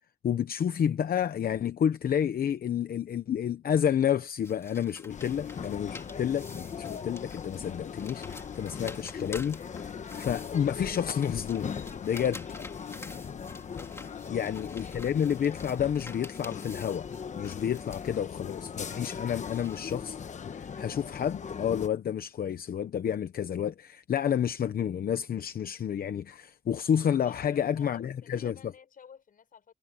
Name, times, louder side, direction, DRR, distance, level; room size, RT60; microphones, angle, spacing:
voice 1, 0.2-11.8 12.0-12.4 14.3-17.1 17.4-28.6, left 9 dB, 90° left, 0.9 m, -30 dB
sound 1, 4.4-20.1, left 2 dB, 15° left, 2.7 m, -49 dB
sound 2, 5.1-21.9, left 6 dB, 55° left, 1.1 m, -39 dB
voice 2, 5.9-6.2 12.8-13.3 14.1-15.1 27.2-29.7, left 7 dB, 70° left, 5.9 m, -54 dB
wide cardioid pair, 180°, 15 cm